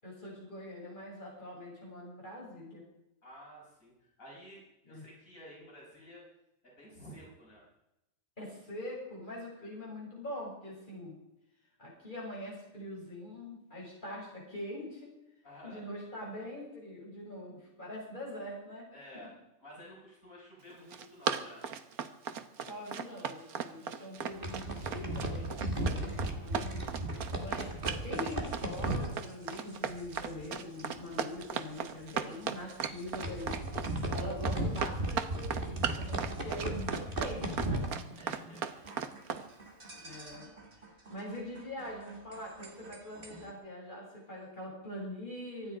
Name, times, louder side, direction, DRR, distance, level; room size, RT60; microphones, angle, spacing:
voice 1, 0.0-2.8 4.8-5.0 8.4-11.2 11.8-15.1 15.6-18.9 22.6-26.8 27.4-27.7 28.0-33.6 34.1-37.9 39.9-40.5 40.8-45.8, left 1 dB, 35° left, -4 dB, 7.3 m, -43 dB
voice 2, 3.2-6.2 6.6-7.6 15.4-15.8 18.9-19.3 19.6-21.6 38.1-39.2, equal, 65° left, -4 dB, 6.5 m, -52 dB
Run, 20.7-39.4, right 7 dB, 90° right, 1.5 m, -36 dB
sound 1, 24.2-30.5 30.8-31.1 31.4-31.5 32.0-32.2 32.8-38.6 38.8-43.5, right 1 dB, 35° right, 2.5 m, -37 dB
24.5 x 10.0 x 5.0 m, 0.86 s
omnidirectional pair, 1.5 m